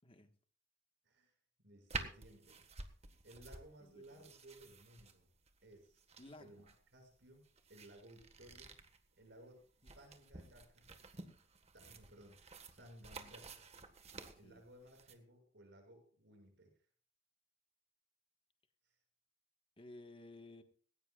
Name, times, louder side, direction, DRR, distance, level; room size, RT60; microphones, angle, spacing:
voice 1, 0.0-0.3 3.8-4.3 6.2-6.7 9.8-9.9 14.2-14.6 19.8-20.6, left 2 dB, 30° left, 7 dB, 1.5 m, -56 dB
voice 2, 1.6-2.6 3.2-5.3 5.6-6.0 6.4-8.8 9.2-9.6 9.9-10.9 11.7-12.4 12.8-13.6 14.3-16.7 18.8-19.0, right 1 dB, 65° right, 3 dB, 6.9 m, -59 dB
sound 1, 1.9-15.2, right 3 dB, 35° right, 1.6 m, -51 dB
19.0 x 17.5 x 2.4 m, 0.44 s
head